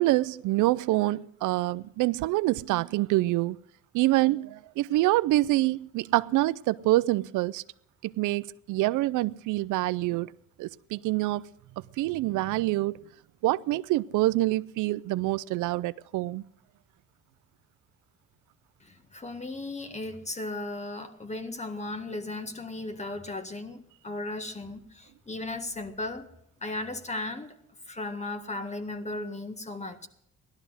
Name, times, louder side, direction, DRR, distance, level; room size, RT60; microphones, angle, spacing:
voice 1, 0.0-3.6 3.9-7.6 8.0-10.3 10.6-11.4 12.0-13.0 13.4-16.4, right 17 dB, 90° right, 0.5 m, -26 dB
voice 2, 18.8-26.3 26.6-27.6 27.9-30.1, left 2 dB, 20° left, 1.7 m, -36 dB
17.0 x 12.5 x 6.3 m
cardioid pair, 90°, 30 cm